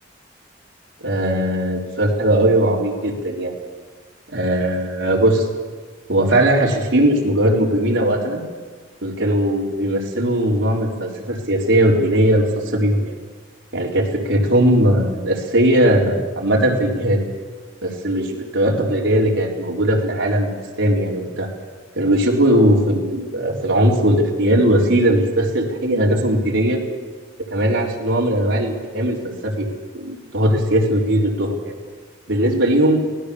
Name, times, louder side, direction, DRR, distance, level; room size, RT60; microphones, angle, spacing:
voice 1, 1.0-3.5 4.3-5.4 6.1-8.4 9.0-13.1 13.7-17.2 17.8-21.5 21.9-26.8 27.5-29.2 29.4-29.7 29.9-31.7 32.3-33.0, right 1 dB, 85° right, -2 dB, 4.0 m, -19 dB
24.5 x 17.5 x 7.1 m, 1.4 s
head